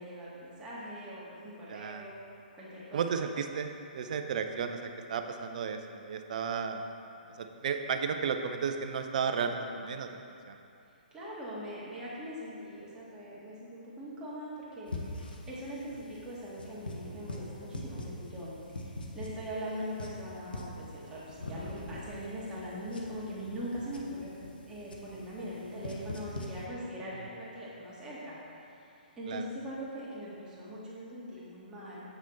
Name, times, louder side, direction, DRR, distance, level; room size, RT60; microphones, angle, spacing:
voice 1, 0.0-2.2 2.6-3.0 11.1-15.1 15.5-24.3 24.7-28.8 29.2-32.0, equal, 15° right, -8 dB, 2.0 m, -41 dB
voice 2, 1.7-2.1 2.9-6.8 7.4-10.6 29.3-29.4, right 6 dB, 55° right, 6 dB, 0.6 m, -34 dB
sound 1, 14.9-26.6, left 2 dB, 75° left, 1.1 m, -44 dB
7.8 x 6.1 x 4.2 m, 2.6 s
figure-of-eight pair, 125°, 5 cm